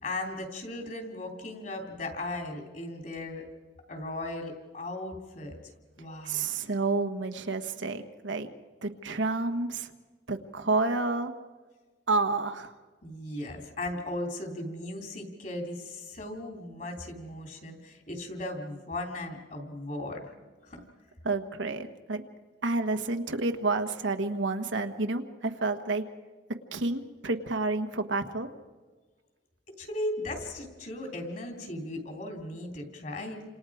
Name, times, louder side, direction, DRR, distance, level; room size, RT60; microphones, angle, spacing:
voice 1, 0.0-3.5 3.9-5.6 6.0-6.6 13.0-20.4 20.6-20.8 29.8-33.4, left 1 dB, 45° left, 3 dB, 3.3 m, -37 dB
voice 2, 6.2-8.5 8.8-9.9 10.3-11.3 12.1-12.7 21.2-22.2 22.6-26.0 26.7-28.5, right 3 dB, 80° right, 6 dB, 1.3 m, -29 dB
29.5 x 26.5 x 5.0 m, 1.4 s
head